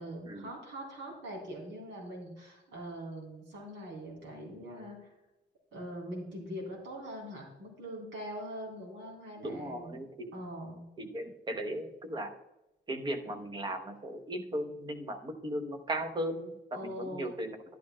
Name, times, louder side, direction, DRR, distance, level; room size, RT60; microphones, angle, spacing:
voice 1, 0.0-5.1 5.7-10.0 10.3-10.8 16.7-17.3, equal, 80° right, -1 dB, 3.6 m, -42 dB
voice 2, 9.4-10.3 11.0-12.3 12.9-17.6, right 1 dB, 25° right, 6 dB, 0.8 m, -37 dB
12.0 x 11.0 x 2.2 m, 0.98 s
cardioid pair, 180°, 19 cm